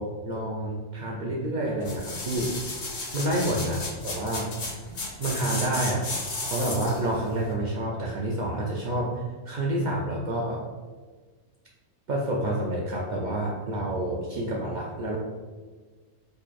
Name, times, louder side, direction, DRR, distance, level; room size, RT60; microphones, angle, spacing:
voice 1, 0.0-2.5 3.1-4.5 5.2-10.6 12.1-15.2, right 1 dB, 80° right, -3 dB, 0.4 m, -29 dB
sound 1, 1.8-7.1 7.5-7.6, left 3 dB, 45° left, 0.5 m, -34 dB
3.9 x 3.1 x 2.4 m, 1.4 s
omnidirectional pair, 1.3 m